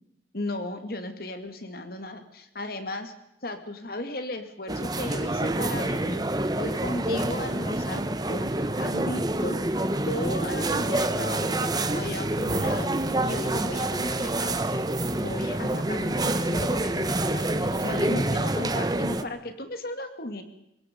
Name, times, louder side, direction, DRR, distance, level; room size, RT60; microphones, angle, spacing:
voice 1, 0.3-3.1 3.4-6.2 6.6-9.6 10.0-14.8 15.2-20.4, left 1 dB, 60° left, 7 dB, 2.5 m, -35 dB
sound 1, 4.7-19.2, right 1 dB, 25° right, 1.0 m, -27 dB
24.5 x 21.5 x 5.4 m, 0.83 s
head